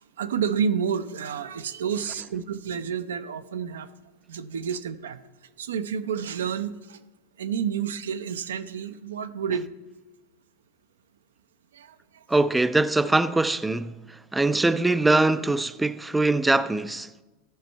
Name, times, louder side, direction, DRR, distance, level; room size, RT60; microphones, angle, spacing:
voice 1, 0.2-3.9 4.3-5.2 5.6-7.0 7.4-9.7 11.7-11.9, right 7 dB, 85° right, 0.4 m, -29 dB
voice 2, 12.3-14.0 14.3-17.1, right 2 dB, 10° right, 0.3 m, -22 dB
13.5 x 5.3 x 4.4 m
hypercardioid pair, 105°, 0 cm